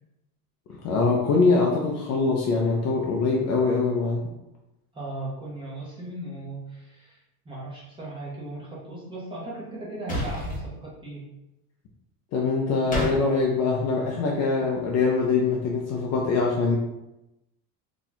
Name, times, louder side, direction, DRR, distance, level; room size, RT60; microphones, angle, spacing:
voice 1, 0.8-4.3 12.3-16.8, left 4 dB, 40° left, -1 dB, 0.4 m, -23 dB
voice 2, 4.9-7.2 7.4-11.3, right 2 dB, 10° right, -6 dB, 0.8 m, -37 dB
sound 1, 10.1-10.6 12.9-13.1, equal, 20° left, 0.9 m, -28 dB
2.8 x 2.3 x 4.0 m, 0.90 s
cardioid pair, 160°, 43 cm